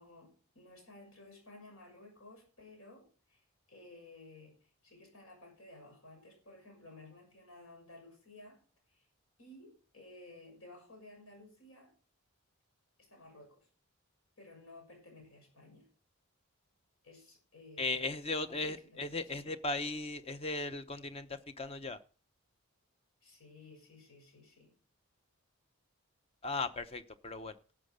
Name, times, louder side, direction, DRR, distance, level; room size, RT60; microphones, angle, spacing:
voice 1, 0.0-8.6 8.9-9.1 9.4-11.9 13.0-13.7 14.4-15.9 17.0-18.0 18.3-19.0 19.3-19.5 23.2-24.7, left 2 dB, 75° left, 2 dB, 6.4 m, -55 dB
voice 2, 17.8-22.0 26.4-27.5, left 3 dB, 25° left, 11 dB, 0.7 m, -37 dB
12.0 x 7.4 x 6.4 m, 0.39 s
head